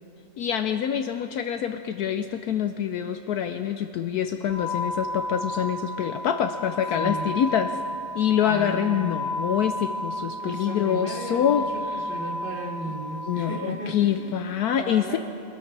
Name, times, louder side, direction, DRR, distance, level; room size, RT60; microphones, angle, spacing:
voice 1, 0.4-7.7 8.1-11.7 13.3-15.2, left 9 dB, 70° left, 8 dB, 1.0 m, -25 dB
sound 1, 4.5-13.5, left 1 dB, 85° right, 4.1 m, -33 dB
voice 2, 6.9-7.3 8.4-9.4 10.4-14.4 14.7-15.2, right 1 dB, 30° right, -3 dB, 2.3 m, -35 dB
24.5 x 13.0 x 3.3 m, 2.5 s
omnidirectional pair, 1.9 m